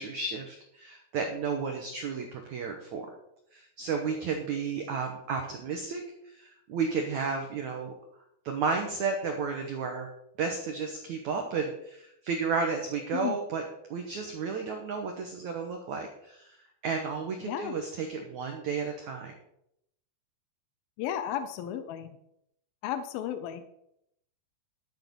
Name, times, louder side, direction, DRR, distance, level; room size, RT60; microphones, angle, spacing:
voice 1, 0.0-3.1 3.5-7.9 8.4-10.1 10.4-13.6 13.9-16.6 16.8-19.3, right 5 dB, 80° right, 3 dB, 1.6 m, -32 dB
voice 2, 17.4-17.7 21.0-22.2 22.8-23.7, left 10 dB, 80° left, 10 dB, 2.2 m, -34 dB
12.5 x 7.9 x 5.3 m, 0.77 s
omnidirectional pair, 5.1 m